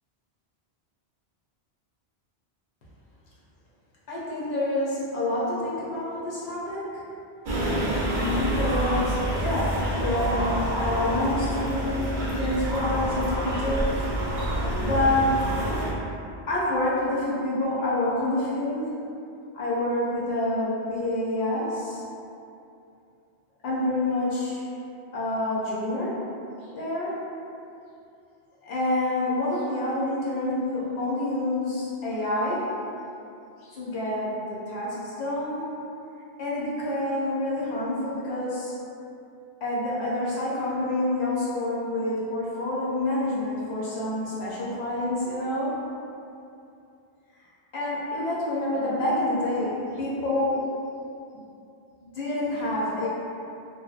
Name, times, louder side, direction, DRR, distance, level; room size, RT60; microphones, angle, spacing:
voice 1, 4.1-7.0 8.3-14.1 14.4-15.4 16.5-19.0 19.5-22.0 23.6-24.7 25.1-26.2 26.7-27.2 28.6-32.7 33.6-35.6 36.4-38.8 39.6-45.8 47.7-50.7 52.0-53.1, left 1 dB, 75° left, -7 dB, 0.8 m, -27 dB
sound 1, 7.5-15.9, right 1 dB, 55° right, 0.6 m, -27 dB
2.6 x 2.0 x 2.3 m, 2.7 s
omnidirectional pair, 1.1 m